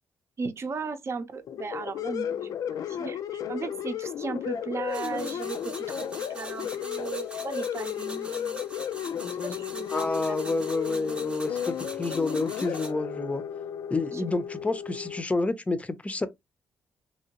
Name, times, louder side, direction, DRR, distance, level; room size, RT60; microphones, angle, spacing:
voice 1, 0.4-8.6 9.4-10.4 14.1-14.3, right 5 dB, 45° right, 0.7 m, -36 dB
sound 1, 1.5-15.2, left 9 dB, 65° left, 0.4 m, -34 dB
sound 2, 4.9-12.9, right 1 dB, 15° right, 0.7 m, -43 dB
voice 2, 9.9-13.4 13.9-16.3, left 3 dB, 20° left, 0.6 m, -29 dB
2.9 x 2.8 x 2.8 m
cardioid pair, 70°, 6 cm